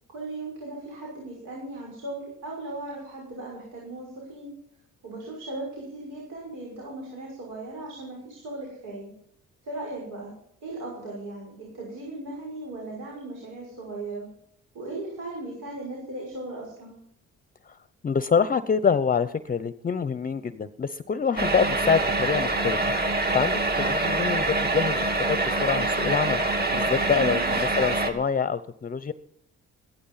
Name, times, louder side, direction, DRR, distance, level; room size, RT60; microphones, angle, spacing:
voice 1, 0.1-4.6 5.0-9.1 9.6-10.3 10.6-14.3 14.7-17.0 27.1-27.5, right 2 dB, 85° right, -2 dB, 6.3 m, -37 dB
voice 2, 18.0-22.8 23.1-26.4 26.7-29.1, left 6 dB, 30° left, 14 dB, 0.7 m, -26 dB
sound 1, 21.4-28.1, right 2 dB, 30° right, 2.6 m, -25 dB
15.0 x 13.0 x 5.6 m, 0.71 s
cardioid pair, 90°, 30 cm